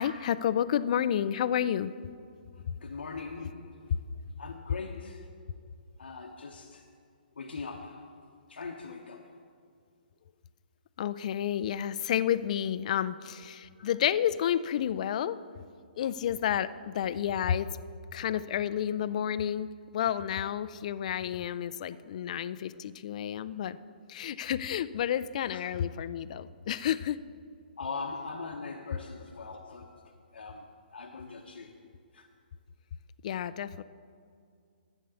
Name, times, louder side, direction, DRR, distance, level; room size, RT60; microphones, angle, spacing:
voice 1, 0.0-1.9 11.0-15.4 16.0-17.7 18.1-19.7 19.9-23.8 24.1-27.2 33.2-33.8, left 10 dB, 45° left, 15 dB, 0.4 m, -30 dB
voice 2, 2.5-3.9 4.4-5.3 6.0-6.8 7.4-8.2 8.5-9.4 13.8-13.9 25.5-25.6 27.8-31.8 32.1-32.3, left 4 dB, 90° left, 1 dB, 1.0 m, -41 dB
12.0 x 8.2 x 6.9 m, 2.3 s
hypercardioid pair, 155°, 5 cm